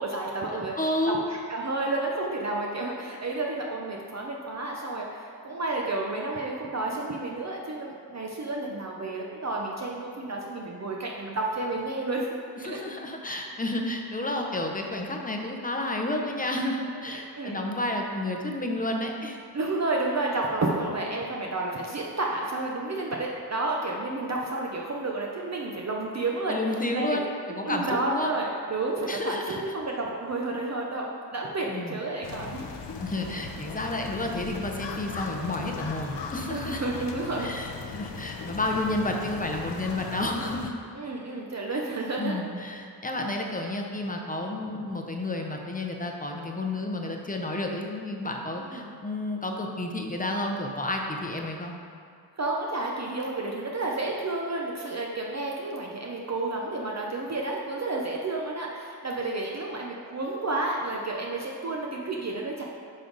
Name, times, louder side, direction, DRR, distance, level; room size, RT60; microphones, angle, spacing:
voice 1, 0.0-0.7 1.1-12.4 12.6-12.8 16.9-17.7 19.5-26.6 26.9-27.2 27.5-31.1 31.3-32.6 36.5-37.6 40.9-42.4 48.6-48.9 52.4-62.6, right 2 dB, 40° right, -2 dB, 0.7 m, -31 dB
voice 2, 0.8-1.3 12.6-19.4 26.5-28.3 29.1-29.6 31.6-32.0 33.0-36.9 37.4-40.7 42.2-51.7, left 1 dB, 20° left, 1 dB, 0.7 m, -31 dB
sound 1, 32.2-40.7, left 5 dB, 80° left, 0.7 m, -38 dB
9.6 x 5.3 x 3.9 m, 2.4 s
wide cardioid pair, 165°, 42 cm